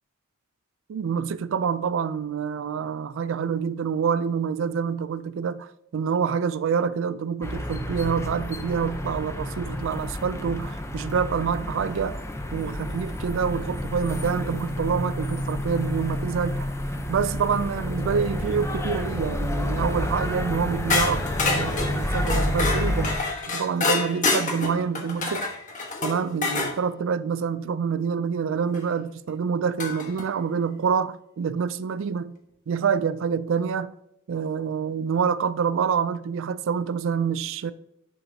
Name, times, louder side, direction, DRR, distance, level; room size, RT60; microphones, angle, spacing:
voice 1, 0.9-12.2 12.5-16.7 17.1-23.2 23.5-25.5 26.0-32.4 32.7-33.9 34.3-37.7, right 6 dB, 65° right, 0.4 m, -27 dB
sound 1, 7.4-23.2, left 1 dB, 15° left, 0.6 m, -29 dB
sound 2, 20.9-26.7 28.7-28.8 29.8-30.2, left 3 dB, 40° left, 1.2 m, -27 dB
10.0 x 5.8 x 2.7 m
head